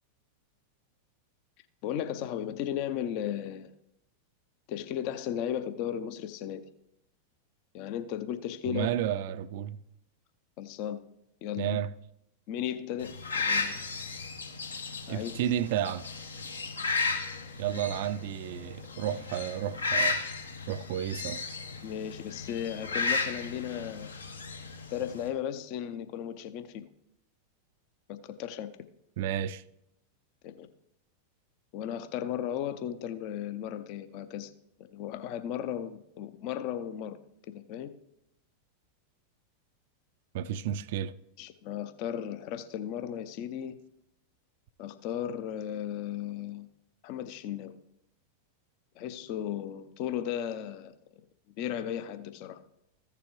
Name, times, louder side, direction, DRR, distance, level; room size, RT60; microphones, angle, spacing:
voice 1, 1.8-3.7 4.7-6.6 7.7-8.9 10.6-11.0 11.4-11.8 12.5-13.9 15.1-15.3 21.8-24.1 24.9-26.9 28.1-28.7 30.4-30.7 31.7-34.5 34.8-37.2 37.5-37.9 41.4-43.8 44.8-46.7 47.0-47.7 49.0-50.9 51.6-52.6, left 10 dB, 45° left, 0.6 m, -35 dB
voice 2, 8.7-9.8 11.6-11.9 15.1-16.0 17.6-20.2 20.7-21.4 29.2-29.6 40.3-41.1, right 10 dB, 50° right, 0.4 m, -32 dB
sound 1, 13.0-25.3, left 4 dB, 75° left, 1.0 m, -34 dB
15.0 x 6.9 x 3.1 m
figure-of-eight pair, 90°, 0 cm